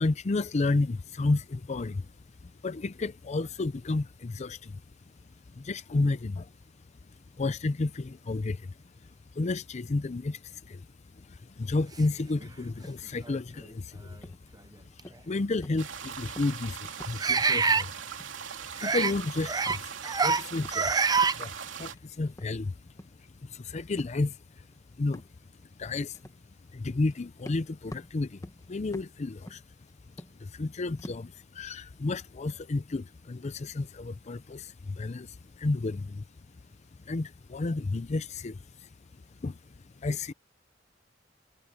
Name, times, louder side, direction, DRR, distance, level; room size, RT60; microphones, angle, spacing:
voice 1, 0.0-40.3, left 3 dB, 35° left, 0.5 m, -33 dB
sound 1, 12.4-12.5 13.2-13.4 15.0-15.1 17.2-17.9 18.8-19.1 19.5-19.8 20.0-20.4 20.7-21.4, right 5 dB, 20° right, 0.5 m, -25 dB
sound 2, 12.8-13.2 13.5-13.8 14.2-14.6 15.0-15.4 15.6-16.0 16.2-17.2 17.5-17.9 18.2-18.6 18.9-20.2 20.6-20.9 21.2-22.0 22.3-23.3 24.0-24.2 24.7-24.8 25.1-25.4 26.1-26.4 27.0-27.1 27.4-30.6 31.0-31.4 31.8-32.7, left 1 dB, 20° left, 1.4 m, -48 dB
sound 3, 15.8-21.9, right 7 dB, 90° right, 2.8 m, -40 dB
head